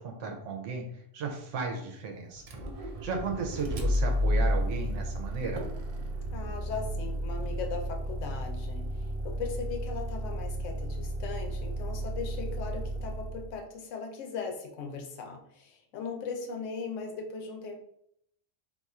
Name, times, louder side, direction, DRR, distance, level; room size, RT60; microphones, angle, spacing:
voice 1, 0.0-2.5 2.8-5.7, right 4 dB, 85° right, 2 dB, 1.0 m, -35 dB
Motor vehicle (road), 2.4-13.6, equal, 60° right, 0.4 m, -32 dB
voice 2, 6.3-17.8, left 5 dB, 85° left, 3 dB, 1.0 m, -38 dB
2.6 x 2.4 x 4.1 m, 0.73 s
omnidirectional pair, 1.3 m